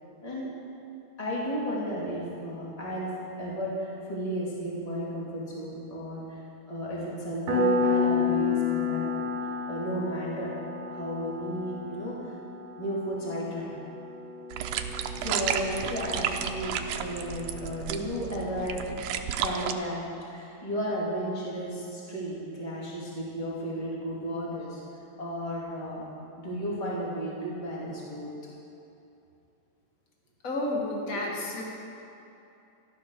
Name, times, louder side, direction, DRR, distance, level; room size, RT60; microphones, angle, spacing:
voice 1, 1.2-6.4 6.7-9.3 9.7-10.6 10.9-12.3 12.8-13.7 15.1-18.9 19.4-20.1 20.3-24.8 25.2-26.1 26.4-28.3 30.9-31.0, equal, 10° left, -6 dB, 2.6 m, -33 dB
Piano, 7.5-17.9, left 4 dB, 60° right, 4.0 m, -31 dB
sound 1, 14.5-19.7, right 9 dB, 90° right, 1.7 m, -32 dB
voice 2, 30.4-31.6, left 2 dB, 75° left, -2 dB, 0.7 m, -31 dB
14.0 x 12.0 x 6.7 m, 2.8 s
omnidirectional pair, 4.4 m